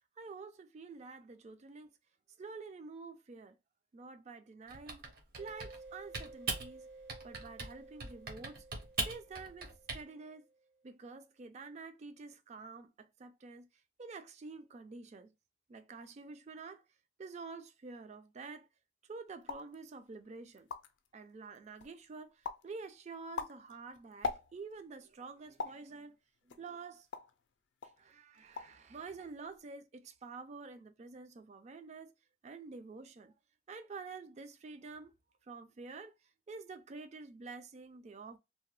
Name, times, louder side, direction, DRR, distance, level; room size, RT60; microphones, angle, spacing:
voice 1, 0.2-1.9 2.4-3.6 3.9-5.0 5.4-6.9 7.2-8.6 9.1-10.5 10.8-13.7 14.0-15.3 15.7-16.8 17.2-18.7 19.1-20.7 21.1-22.3 22.6-26.2 26.5-27.1 28.0-32.1 32.4-33.3 33.7-35.1 35.5-36.1 36.5-38.4, right 4 dB, 40° right, 0.4 m, -48 dB
Typing, 4.7-5.9 6.1-6.7 7.1-7.7 8.0-10.0, right 4 dB, 55° right, 0.7 m, -40 dB
sound 1, 5.4-10.7, right 3 dB, 80° right, 0.9 m, -54 dB
sound 2, 19.4-19.7 20.3-20.4 20.5-21.1 21.5-22.0 22.4-22.7 23.1-24.8 25.6-25.9 26.5-27.4 27.8-28.0 28.3-28.8 29.1-29.6, left 4 dB, 75° left, 0.4 m, -41 dB
2.7 x 2.1 x 3.1 m
head